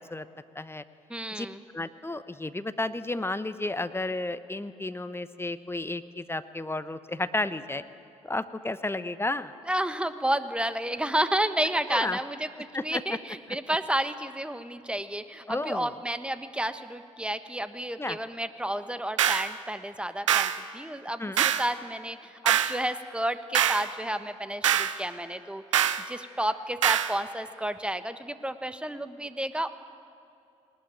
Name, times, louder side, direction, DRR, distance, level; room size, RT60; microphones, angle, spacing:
voice 1, 1.1-1.6 9.7-29.7, right 1 dB, 5° right, 11 dB, 1.3 m, -31 dB
voice 2, 1.7-7.8 8.2-9.5 11.9-12.2 12.7-13.0 15.5-15.9 18.0-18.2 21.2-21.4, left 2 dB, 15° left, 12 dB, 1.0 m, -32 dB
sound 1, 19.2-19.5 20.3-20.6 21.4-21.7 22.5-22.8 23.5-23.9 24.6-25.0 25.7-26.0 26.8-27.1, right 10 dB, 90° right, 0.4 m, -24 dB
20.0 x 19.5 x 8.9 m, 2.6 s
hypercardioid pair, 40°, 16 cm